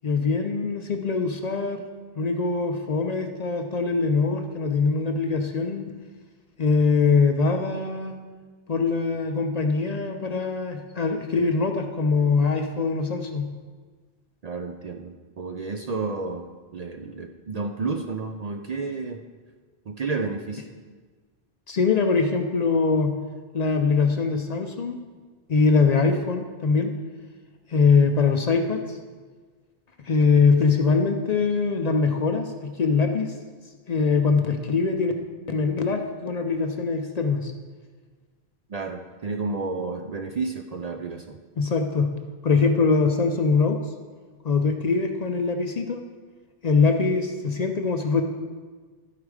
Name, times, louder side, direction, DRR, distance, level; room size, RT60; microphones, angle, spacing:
voice 1, 0.0-1.8 2.2-5.8 6.6-8.1 8.7-13.5 21.7-23.2 23.5-25.0 25.5-26.9 27.7-29.0 30.0-33.3 33.9-35.1 35.5-37.5 41.6-42.1 42.4-43.8 44.4-46.0 46.6-48.2, left 4 dB, 50° left, 5 dB, 0.5 m, -22 dB
voice 2, 14.4-19.2 19.9-20.6 38.7-41.4, right 4 dB, 55° right, 5 dB, 0.5 m, -31 dB
11.5 x 4.8 x 4.8 m, 1.4 s
omnidirectional pair, 1.0 m